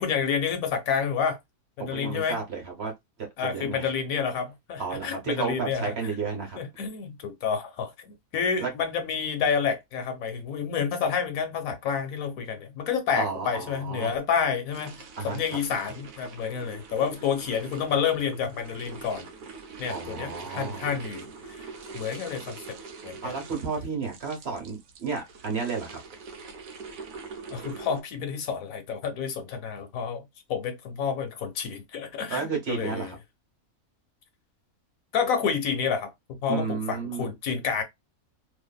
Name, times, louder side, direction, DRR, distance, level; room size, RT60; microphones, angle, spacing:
voice 1, 0.0-1.4 1.8-2.4 3.4-5.8 6.6-15.0 15.2-19.3 19.8-21.3 21.6-21.7 21.9-22.8 23.0-23.3 27.5-33.1 35.1-37.8, left 6 dB, 70° left, 1.1 m, -29 dB
voice 2, 1.8-2.9 3.2-3.9 4.8-6.6 8.6-8.7 13.1-14.1 15.2-15.6 19.9-21.0 23.2-26.0 32.3-33.2 36.5-37.3, right 5 dB, 50° right, 1.1 m, -32 dB
sound 1, 14.7-28.0, right 5 dB, 70° right, 1.1 m, -44 dB
2.6 x 2.5 x 2.2 m
omnidirectional pair, 1.5 m